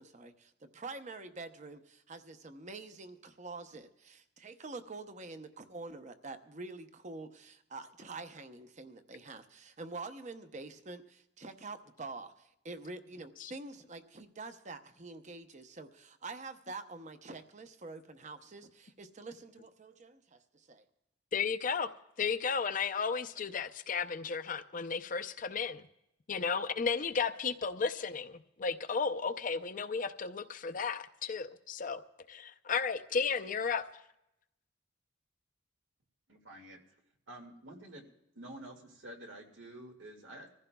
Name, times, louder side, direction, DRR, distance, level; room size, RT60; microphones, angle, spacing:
voice 1, 0.0-20.8, right 3 dB, 40° right, 0.8 m, -46 dB
voice 2, 21.3-21.9 22.2-25.9 26.3-32.0 32.3-33.8, left 5 dB, 45° left, 0.5 m, -34 dB
voice 3, 36.3-36.8 37.3-38.0 38.4-40.5, right 1 dB, 85° right, 2.0 m, -49 dB
25.5 x 15.0 x 2.3 m
head